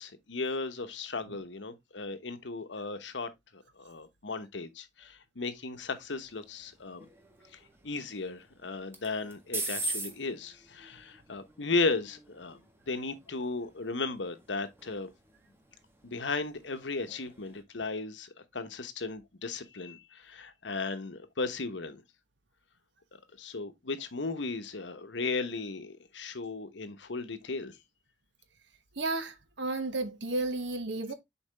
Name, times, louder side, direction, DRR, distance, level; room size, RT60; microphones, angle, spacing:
voice 1, 0.0-7.1 7.8-12.6 12.9-15.1 16.0-22.0 23.4-27.8, left 3 dB, 85° left, 1.1 m, -36 dB
sound 1, 5.7-17.6, right 2 dB, 15° right, 1.5 m, -44 dB
voice 2, 29.0-31.1, right 2 dB, 75° right, 1.2 m, -33 dB
7.0 x 4.7 x 3.4 m
head